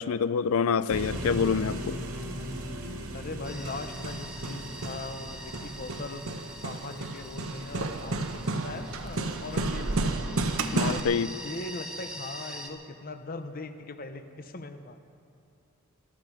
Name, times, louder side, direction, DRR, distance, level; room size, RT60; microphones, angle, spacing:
voice 1, 0.0-2.0 10.7-11.3, left 6 dB, 80° left, 17 dB, 0.4 m, -26 dB
sound 1, 0.9-9.0, equal, 90° right, 2.0 m, -39 dB
voice 2, 3.1-6.2 6.6-10.2 10.7-15.0, left 2 dB, 40° left, 9 dB, 0.8 m, -40 dB
sound 2, 3.4-12.7, equal, 5° right, 1.2 m, -44 dB
Hammer, 3.4-11.0, right 2 dB, 75° right, 1.0 m, -32 dB
20.5 x 13.0 x 4.8 m, 2.6 s
head